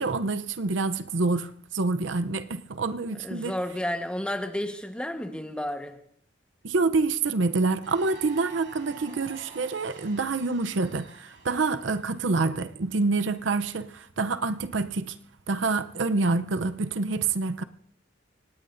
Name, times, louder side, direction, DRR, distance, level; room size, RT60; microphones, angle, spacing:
voice 1, 0.0-3.5 6.6-15.1 15.5-17.6, right 3 dB, 90° right, 0.7 m, -27 dB
voice 2, 3.2-6.0, left 1 dB, 5° left, 1.2 m, -31 dB
sound 1, 7.8-12.5, right 5 dB, 70° right, 3.5 m, -48 dB
25.0 x 18.5 x 2.6 m
head